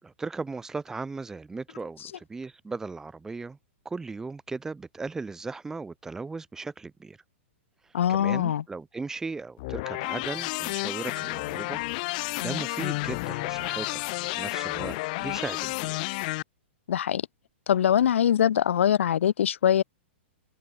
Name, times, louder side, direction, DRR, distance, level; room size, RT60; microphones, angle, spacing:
voice 1, 0.0-3.6 3.8-7.2 8.1-11.8 12.1-16.0, right 4 dB, 5° right, 2.9 m, -37 dB
voice 2, 7.9-8.6 16.9-17.2 17.7-19.8, left 9 dB, 75° left, 2.6 m, -22 dB
sound 1, 9.6-16.4, left 24 dB, 40° left, 1.7 m, -31 dB
hypercardioid pair, 155°, 7 cm